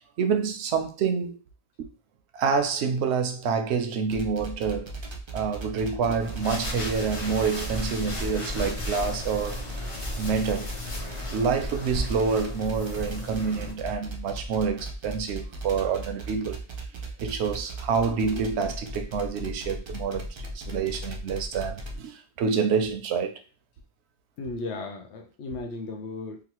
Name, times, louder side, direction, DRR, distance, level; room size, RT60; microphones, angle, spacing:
voice 1, 0.2-1.4 1.8-1.9 2.3-4.9 5.3-9.6 10.2-10.7 11.3-16.6 17.2-23.3, right 5 dB, 75° right, 0.8 m, -27 dB
sound 1, 4.1-22.0, right 1 dB, 50° right, 0.3 m, -37 dB
sound 2, 6.2-13.7, equal, 35° left, 0.6 m, -35 dB
voice 2, 24.4-26.4, left 3 dB, 80° left, 0.9 m, -35 dB
3.0 x 2.4 x 2.9 m
omnidirectional pair, 1.2 m